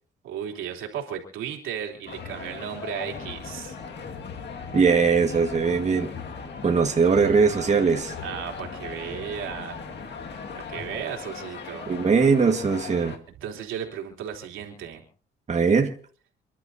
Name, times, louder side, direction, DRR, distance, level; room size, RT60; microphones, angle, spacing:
voice 1, 0.2-3.8 8.2-9.8 10.7-11.9 13.4-15.0, right 9 dB, 90° right, 1 dB, 3.3 m, -35 dB
sound 1, 2.1-13.2, left 5 dB, 60° left, 2.0 m, -38 dB
sound 2, 3.0-11.0, left 2 dB, 45° left, 7.7 m, -45 dB
voice 2, 4.7-6.1 6.6-8.1 11.9-13.1 15.5-15.9, right 5 dB, 35° right, 3 dB, 1.7 m, -20 dB
29.0 x 11.5 x 2.8 m, 0.43 s
cardioid pair, 90°, 20 cm